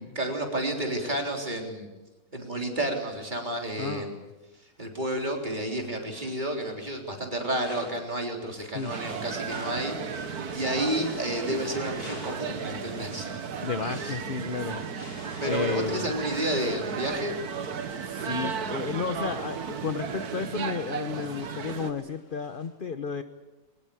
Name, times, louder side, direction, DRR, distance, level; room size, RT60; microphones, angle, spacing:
voice 1, 0.0-1.9 2.3-4.1 4.8-13.3 13.8-14.2 15.4-17.4, right 1 dB, 25° right, 1 dB, 3.8 m, -31 dB
voice 2, 3.8-4.3 8.7-8.9 13.6-14.8 15.5-16.1 18.0-23.2, left 5 dB, 40° left, 9 dB, 0.9 m, -32 dB
sound 1, 4.1-4.2 4.8-22.7, left 1 dB, 80° left, 6.1 m, -50 dB
sound 2, 8.9-21.9, right 6 dB, 65° right, 1.8 m, -35 dB
22.0 x 20.0 x 8.5 m, 1.1 s
omnidirectional pair, 1.9 m